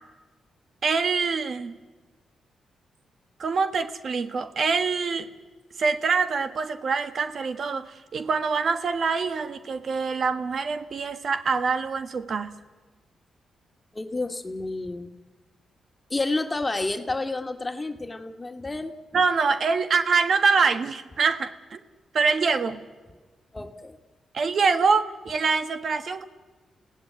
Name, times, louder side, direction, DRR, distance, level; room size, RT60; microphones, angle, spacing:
voice 1, 0.8-1.7 3.4-5.3 5.8-12.6 19.1-21.8 22.1-22.8 24.3-26.2, right 5 dB, 60° right, 9 dB, 1.4 m, -25 dB
voice 2, 13.9-15.1 16.1-19.0 23.5-24.0, left 2 dB, 25° left, 6 dB, 2.0 m, -30 dB
28.5 x 16.5 x 9.7 m, 1.3 s
cardioid pair, 65°, 0 cm